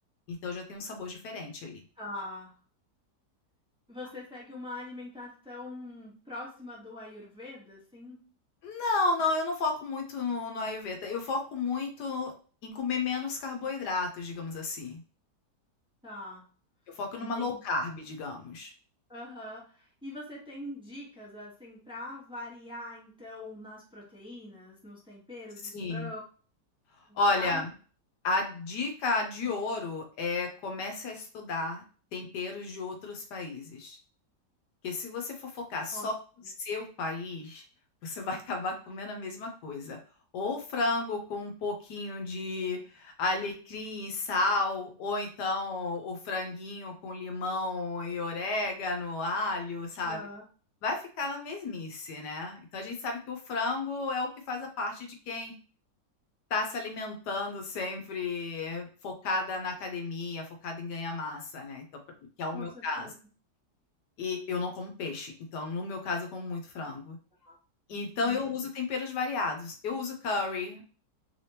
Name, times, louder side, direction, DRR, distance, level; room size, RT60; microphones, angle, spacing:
voice 1, 0.3-1.8 8.6-12.3 12.6-15.0 17.0-18.7 25.7-26.1 27.1-27.7 28.2-31.8 32.1-34.0 34.8-36.1 36.6-37.6 38.0-40.0 40.3-50.2 50.8-55.6 56.5-61.8 62.4-63.1 64.2-67.2 67.9-70.8, left 3 dB, 80° left, 3 dB, 1.4 m, -33 dB
voice 2, 2.0-2.6 3.9-8.2 16.0-16.5 17.1-17.6 19.1-26.2 27.1-27.6 35.9-36.1 50.0-50.4 62.5-63.1 67.4-67.6 68.2-68.4, left 1 dB, 5° right, -5 dB, 0.9 m, -43 dB
3.5 x 3.3 x 2.8 m, 0.39 s
omnidirectional pair, 1.8 m